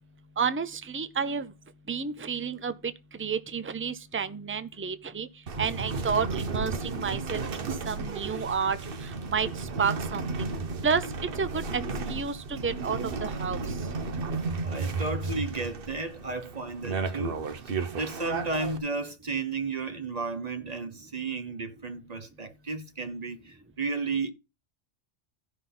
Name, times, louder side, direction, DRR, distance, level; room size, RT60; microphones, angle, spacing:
voice 1, 0.4-1.5 1.9-2.9 3.2-5.3 5.6-8.8 9.0-10.5 10.8-11.0 11.4-11.8 12.1-13.6, right 6 dB, 15° right, 0.4 m, -30 dB
sound 1, 5.5-18.8, right 4 dB, 55° right, 1.1 m, -33 dB
voice 2, 14.6-17.4 17.9-24.3, right 3 dB, 35° right, 1.1 m, -33 dB
14.5 x 5.7 x 3.8 m
omnidirectional pair, 1.2 m